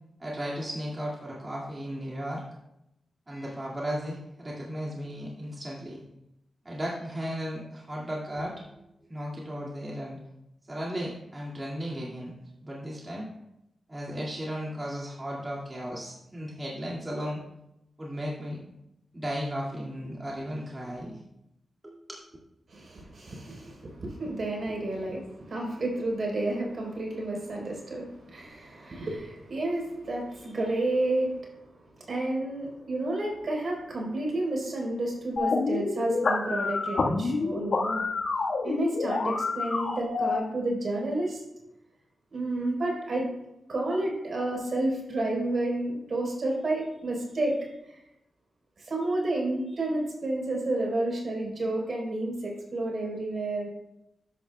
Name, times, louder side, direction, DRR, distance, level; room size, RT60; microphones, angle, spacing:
voice 1, 0.2-2.4 3.3-6.0 6.6-8.6 9.1-10.2 10.6-12.3 12.6-13.3 13.9-17.4 18.0-18.6 19.1-21.2 21.8-22.2, equal, 25° right, -5 dB, 2.2 m, -35 dB
voice 2, 22.7-31.3 32.0-38.0 38.6-41.4 42.3-43.3 43.7-48.0 48.8-53.7, right 2 dB, 60° right, -1 dB, 4.0 m, -30 dB
sound 1, 35.4-40.4, left 3 dB, 70° left, 1.5 m, -28 dB
12.5 x 10.0 x 2.3 m, 0.88 s
cardioid pair, 70°, 0 cm